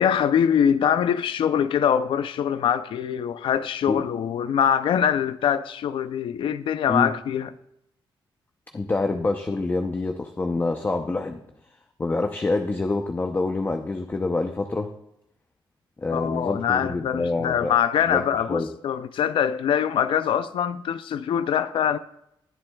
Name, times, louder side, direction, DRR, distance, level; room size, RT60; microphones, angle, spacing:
voice 1, 0.0-7.5 16.1-22.0, left 8 dB, 75° left, 0.5 m, -23 dB
voice 2, 8.7-11.4 12.0-14.9 16.0-17.7 18.1-18.2 18.5-18.7, left 3 dB, 20° left, 0.7 m, -26 dB
20.0 x 7.6 x 2.3 m
cardioid pair, 115°, 9 cm